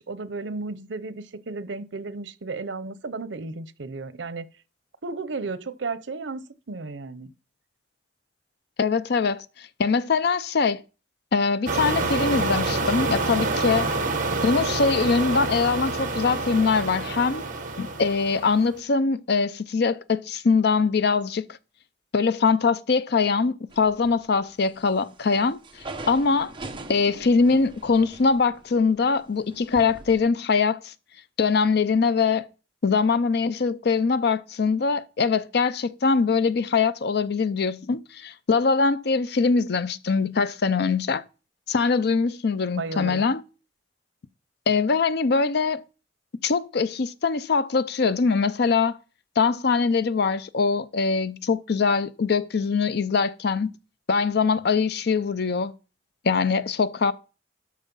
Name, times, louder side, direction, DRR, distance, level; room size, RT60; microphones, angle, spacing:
voice 1, 0.0-4.5 5.0-7.3 42.8-43.2, right 3 dB, 85° right, 0.7 m, -34 dB
voice 2, 8.8-10.8 11.3-13.9 14.4-17.4 17.8-21.5 22.1-25.6 26.1-26.5 26.9-30.9 31.4-32.5 32.8-41.2 41.7-43.4 44.7-45.8 46.4-49.0 49.4-53.7 54.1-55.7 56.2-57.1, left 4 dB, 60° left, 0.5 m, -22 dB
sound 1, 11.7-18.7, right 3 dB, 45° right, 1.4 m, -27 dB
sound 2, 23.7-24.4 24.8-30.3, right 2 dB, 30° right, 1.0 m, -42 dB
12.5 x 4.8 x 5.4 m
head